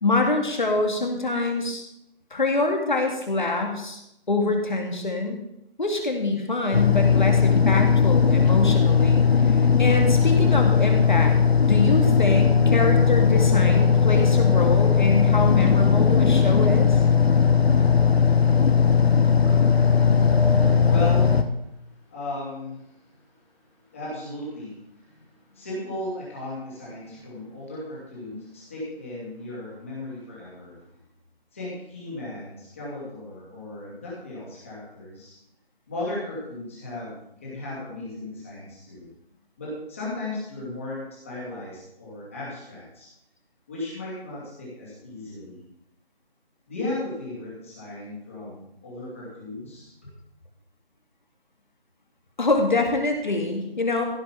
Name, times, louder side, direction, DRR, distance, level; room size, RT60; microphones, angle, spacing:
voice 1, 0.0-1.8 2.3-4.0 4.3-5.4 5.8-11.4 11.7-17.0 52.4-54.0, left 2 dB, 50° left, 2 dB, 2.3 m, -25 dB
sound 1, 6.7-21.4, left 6 dB, 90° left, 1.3 m, -18 dB
voice 2, 19.4-23.4 23.7-30.8 31.5-35.3 35.9-39.1 39.6-43.1 43.7-45.6 46.7-49.9, left 2 dB, 15° left, -7 dB, 2.6 m, -36 dB
15.5 x 5.8 x 5.9 m, 0.80 s
figure-of-eight pair, 175°, 30 cm